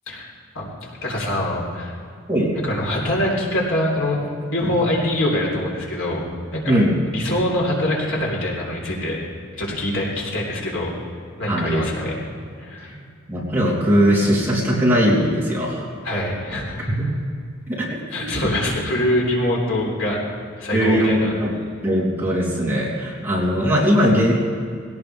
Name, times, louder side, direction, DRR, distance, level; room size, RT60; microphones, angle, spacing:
voice 1, 0.1-1.9 2.5-4.2 4.5-6.2 6.5-6.8 7.1-9.2 9.6-10.9 11.4-12.2 12.6-13.0 16.0-16.9 18.1-20.2 20.6-21.3, left 1 dB, 70° left, -3 dB, 4.0 m, -24 dB
voice 2, 6.6-6.9 11.5-12.1 12.8-12.9 13.3-15.9 17.8-17.9 18.4-18.5 20.7-21.5 21.8-24.3, equal, 10° right, -7 dB, 3.4 m, -19 dB
21.0 x 17.5 x 3.5 m, 2.2 s
head